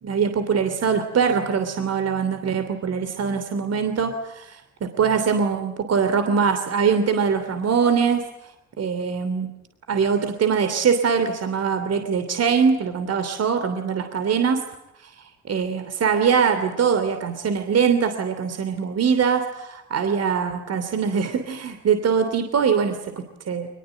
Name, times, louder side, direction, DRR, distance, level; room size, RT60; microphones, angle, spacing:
voice 1, 0.0-8.2 8.8-9.5 9.9-14.6 15.0-15.1 15.4-23.7, right 6 dB, 55° right, 7 dB, 3.0 m, -22 dB
24.0 x 21.0 x 9.1 m, 0.88 s
cardioid pair, 90°, 30 cm